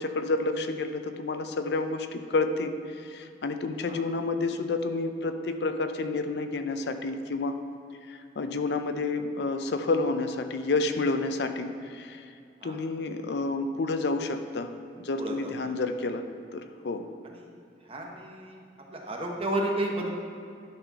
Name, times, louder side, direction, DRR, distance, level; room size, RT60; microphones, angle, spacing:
voice 1, 0.0-7.5 8.1-12.2 12.6-14.7 15.0-16.2 16.5-17.1, left 3 dB, 65° left, 8 dB, 0.5 m, -30 dB
voice 2, 3.7-4.0 12.6-12.8 15.2-15.6 17.2-17.5 17.8-18.6 18.9-20.1, right 1 dB, 30° right, 0 dB, 1.1 m, -32 dB
10.5 x 4.2 x 5.8 m, 2.4 s
head